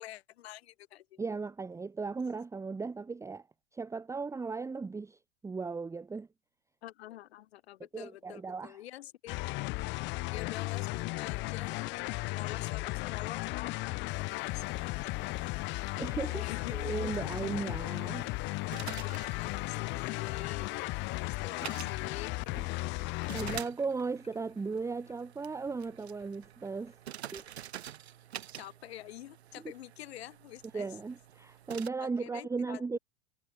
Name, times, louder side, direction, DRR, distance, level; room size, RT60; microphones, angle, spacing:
voice 1, 0.0-1.2 6.8-9.4 10.3-12.0 12.3-15.5 16.4-17.0 18.8-22.3 28.6-31.0 32.0-33.0, left 14 dB, 70° left, 2.4 m, -47 dB
voice 2, 1.2-3.5 3.7-6.3 7.9-8.8 16.0-16.4 16.7-18.3 22.6-22.7 22.9-26.9 27.3-27.4 30.7-33.0, right 4 dB, 10° right, 0.8 m, -36 dB
sound 1, 9.3-23.6, left 24 dB, 35° left, 0.5 m, -35 dB
sound 2, 14.1-31.9, right 11 dB, 80° right, 4.3 m, -49 dB
sound 3, 23.8-27.9, left 5 dB, 20° left, 6.9 m, -70 dB
hypercardioid pair, 105°, 32 cm